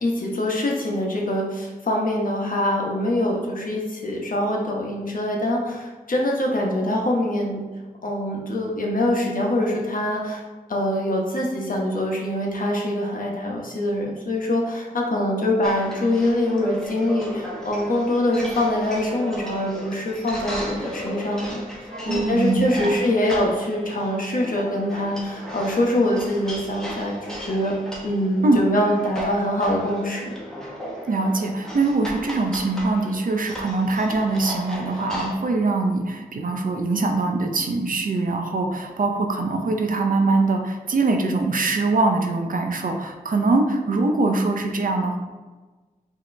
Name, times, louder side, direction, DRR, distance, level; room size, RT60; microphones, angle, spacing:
voice 1, 0.0-7.6 8.0-10.4 10.7-21.6 22.1-27.8 28.0-30.4, left 1 dB, 65° left, -1 dB, 1.0 m, -24 dB
sound 1, 15.6-35.3, equal, 5° left, 1.2 m, -36 dB
voice 2, 21.9-22.9 28.4-28.6 31.1-45.2, right 3 dB, 65° right, 4 dB, 0.6 m, -23 dB
4.9 x 2.9 x 3.3 m, 1.3 s
wide cardioid pair, 65°, 15 cm